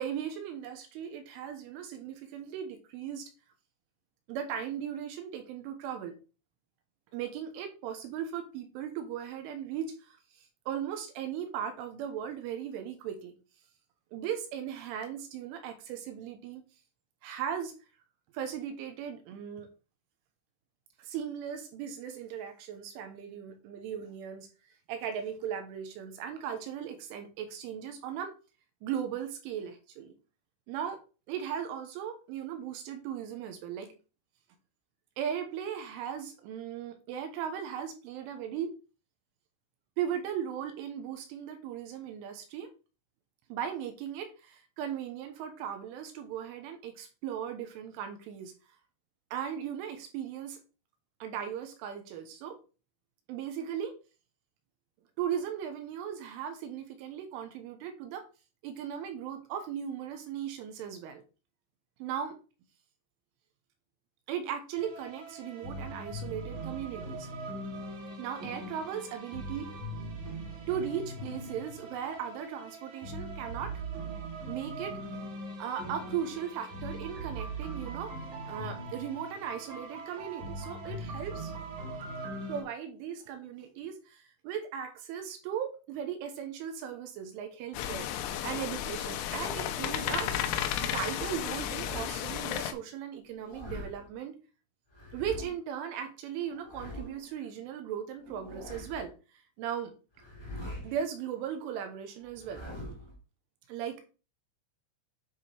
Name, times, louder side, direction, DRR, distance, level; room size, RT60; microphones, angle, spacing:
voice 1, 0.0-3.3 4.3-6.1 7.1-13.3 14.1-16.6 17.2-17.7 18.3-19.7 21.0-24.5 24.9-28.3 28.8-30.1 30.7-31.0 31.3-33.9 35.2-38.7 40.0-42.7 43.5-48.5 49.3-50.6 51.2-52.6 53.3-53.9 55.2-58.3 58.6-61.2 62.0-62.4 64.3-67.3 68.2-69.7 70.7-73.8 74.5-75.0 75.6-78.2 78.5-81.5 82.5-90.5 90.8-94.4 95.1-99.1 99.6-99.9 100.8-102.6 103.7-104.0, right 9 dB, 80° right, 6 dB, 3.4 m, -37 dB
sound 1, 64.7-82.6, right 2 dB, 55° right, 2.2 m, -41 dB
sound 2, 87.7-92.7, left 10 dB, 85° left, 3.2 m, -33 dB
sound 3, 89.8-90.7 91.5-92.1 93.2-94.1 94.9-95.5 96.4-97.3 98.2-99.1 100.1-101.0 102.3-103.2, left 1 dB, 25° left, 0.5 m, -44 dB
9.9 x 4.3 x 3.4 m, 0.33 s
omnidirectional pair, 5.9 m